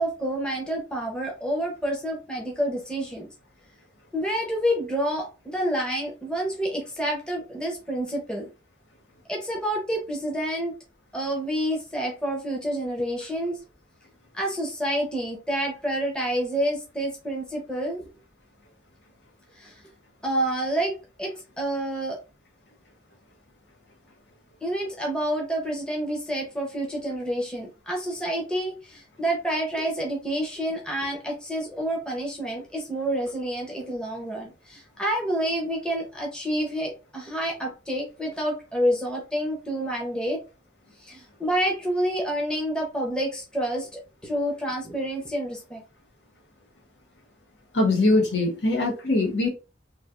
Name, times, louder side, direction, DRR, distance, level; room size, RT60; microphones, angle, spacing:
voice 1, 0.0-3.3 4.1-8.5 9.3-10.7 11.1-13.6 14.3-18.1 19.5-19.8 20.2-22.2 24.6-40.4 41.0-43.9 44.2-45.8, right 1 dB, 5° left, 0.6 m, -28 dB
voice 2, 47.7-49.5, left 2 dB, 75° left, 1.0 m, -22 dB
3.2 x 2.4 x 2.4 m
head